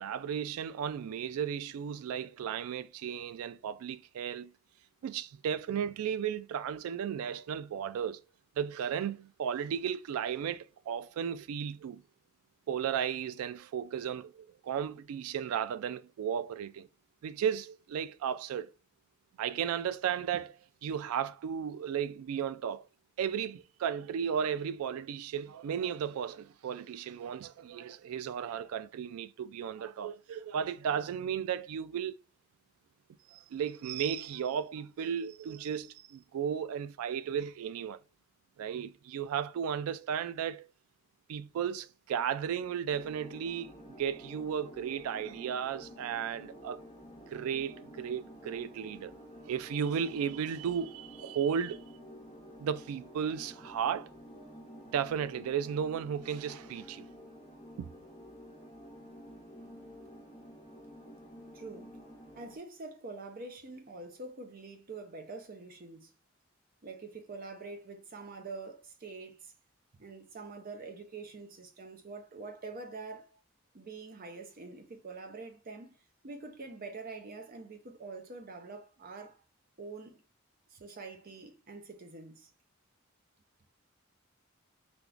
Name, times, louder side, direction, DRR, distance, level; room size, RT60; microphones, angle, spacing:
voice 1, 0.0-4.5 5.0-8.2 8.6-12.0 12.7-16.9 17.2-18.7 19.4-22.8 23.2-32.2 33.3-38.0 38.6-40.7 41.3-43.7 44.0-46.8 47.3-49.2 49.5-51.8 52.6-54.1 54.9-57.1 57.8-57.9, right 8 dB, 90° right, 0.3 m, -34 dB
sound 1, 42.9-62.6, equal, 20° left, 1.1 m, -50 dB
voice 2, 61.5-62.0 62.4-66.1 66.8-69.5 70.0-73.4 73.7-76.0 76.2-79.4 79.8-80.2 80.7-82.5, right 3 dB, 40° right, 0.6 m, -45 dB
3.4 x 2.9 x 2.5 m
head